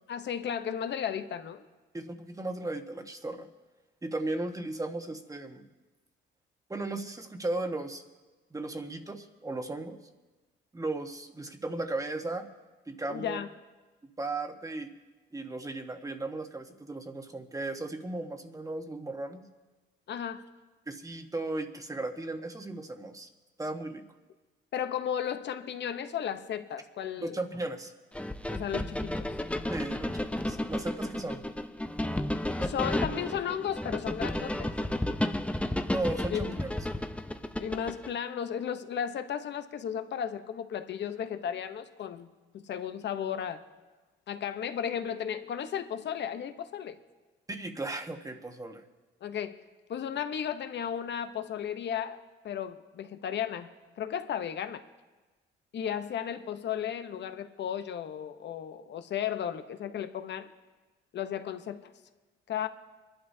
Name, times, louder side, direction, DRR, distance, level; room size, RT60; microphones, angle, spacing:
voice 1, 0.1-1.6 13.1-13.5 20.1-20.4 24.7-27.4 28.5-29.3 32.6-34.7 36.3-36.6 37.6-43.6 44.3-47.0 49.2-49.6 49.9-53.7 54.0-54.8 55.7-60.5 61.1-61.8 62.5-62.7, left 9 dB, 60° left, 9 dB, 0.9 m, -34 dB
voice 2, 1.9-3.5 4.0-5.6 6.7-8.0 8.5-10.0 10.7-12.5 12.9-13.4 14.2-14.9 15.3-19.4 20.9-23.3 23.6-24.0 27.2-27.9 29.7-31.4 35.9-36.8 47.5-48.8, right 2 dB, 15° right, 5 dB, 1.3 m, -36 dB
sound 1, 28.1-38.1, left 1 dB, 5° left, 0.6 m, -32 dB
26.0 x 11.5 x 2.8 m, 1.2 s
cardioid pair, 90°, 20 cm